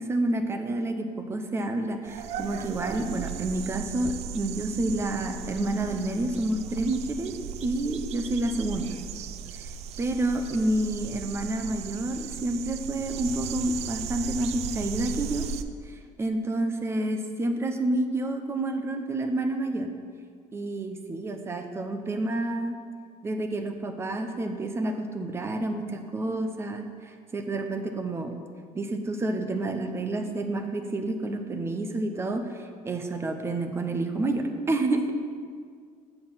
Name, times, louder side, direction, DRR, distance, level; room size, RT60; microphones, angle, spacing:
voice 1, 0.0-8.9 10.0-15.5 15.8-19.9 20.5-22.8 23.2-28.3 28.7-35.1, right 2 dB, 20° right, 6 dB, 0.7 m, -29 dB
sound 1, 2.0-15.6, right 8 dB, 55° right, 0.4 m, -37 dB
7.8 x 6.5 x 5.6 m, 2.1 s
cardioid pair, 160°, 13 cm